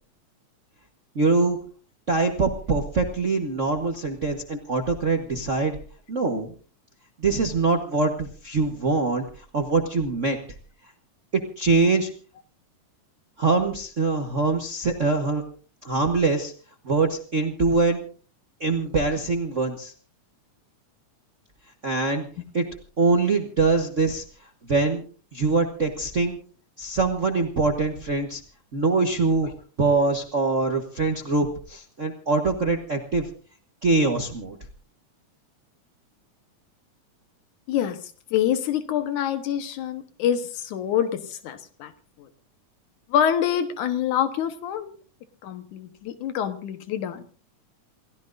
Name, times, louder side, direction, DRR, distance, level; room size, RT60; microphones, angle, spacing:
voice 1, 1.1-1.6 2.1-5.8 6.1-6.5 7.2-9.2 9.5-10.4 11.3-12.1 13.4-15.4 15.8-16.5 16.8-18.0 18.6-19.9 21.8-22.3 22.5-22.6 23.0-24.2 24.7-25.0 25.3-26.4 26.8-28.4 28.7-29.5 29.8-33.3 33.8-34.6, right 3 dB, 60° right, 3 dB, 0.7 m, -23 dB
voice 2, 37.7-38.0 38.3-41.9 43.1-45.0 45.4-47.2, left 9 dB, 85° left, 9 dB, 2.6 m, -26 dB
28.5 x 16.0 x 2.6 m, 0.40 s
omnidirectional pair, 3.4 m